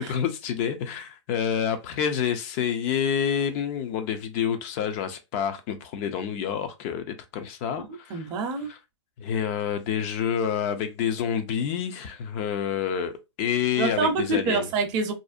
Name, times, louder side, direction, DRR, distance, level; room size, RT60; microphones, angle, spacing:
voice 1, 0.1-8.2 9.2-13.1 13.4-14.7, left 8 dB, 30° left, 0.4 m, -28 dB
voice 2, 7.8-8.7 13.8-15.1, right 3 dB, 25° right, 0.6 m, -26 dB
2.5 x 2.0 x 2.4 m
hypercardioid pair, 135°, 16 cm